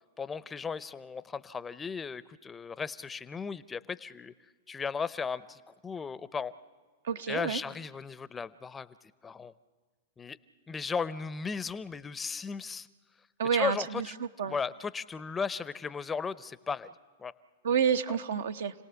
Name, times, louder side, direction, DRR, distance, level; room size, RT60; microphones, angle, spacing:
voice 1, 0.2-4.3 4.7-6.5 7.3-8.9 9.2-9.5 10.2-10.4 10.7-12.9 13.5-14.1 14.4-16.9 17.2-17.3 18.1-18.2, left 5 dB, 15° left, 16 dB, 0.6 m, -36 dB
voice 2, 7.1-7.6 13.4-14.5 17.6-18.7, right 7 dB, 75° right, 8 dB, 0.9 m, -29 dB
29.5 x 18.0 x 7.0 m, 1.4 s
hypercardioid pair, 115°, 0 cm